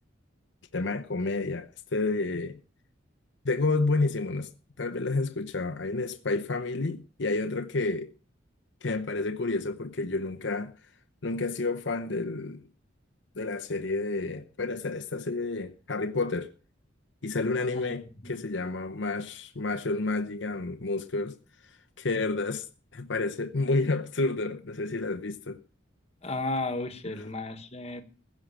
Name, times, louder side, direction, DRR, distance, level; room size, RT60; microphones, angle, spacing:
voice 1, 0.7-2.6 3.4-4.5 4.8-8.1 8.8-10.7 11.2-12.6 13.4-16.5 17.2-18.0 18.3-21.4 22.0-22.7 22.9-25.6, left 3 dB, 65° left, 0.8 m, -30 dB
voice 2, 17.7-18.4 26.2-28.0, left 2 dB, 30° left, 1.5 m, -34 dB
15.5 x 6.4 x 7.5 m
head